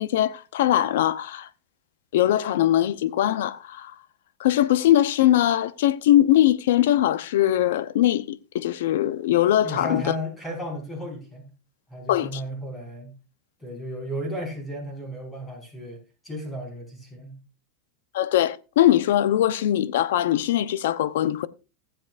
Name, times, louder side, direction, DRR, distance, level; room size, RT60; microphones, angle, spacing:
voice 1, 0.0-1.5 2.1-3.9 4.4-10.0 12.1-12.4 18.1-21.5, left 12 dB, 75° left, 0.8 m, -21 dB
voice 2, 9.6-11.5 11.9-13.1 13.6-17.4, equal, 15° left, 5.5 m, -34 dB
20.0 x 7.8 x 2.6 m
hypercardioid pair, 115°, 0 cm